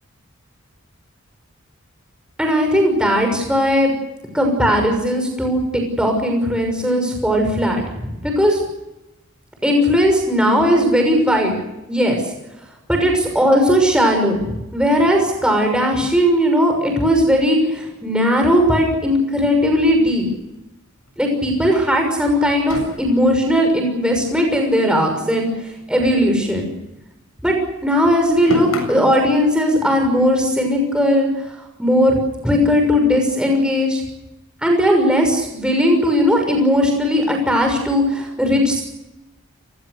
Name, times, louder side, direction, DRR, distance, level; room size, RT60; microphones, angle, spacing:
voice 1, 2.4-3.9 4.3-8.6 9.6-11.5 11.9-12.2 12.9-20.3 21.2-26.6 27.4-27.6 27.8-32.2 32.4-34.0 34.6-38.8, equal, 5° right, 2 dB, 6.3 m, -17 dB
sound 1, 19.8-21.1 21.4-21.5 21.8-22.0 22.6-25.1 25.4-27.2 27.5-29.2, left 2 dB, 85° left, 7.5 m, -34 dB
29.5 x 20.5 x 6.8 m, 0.94 s
head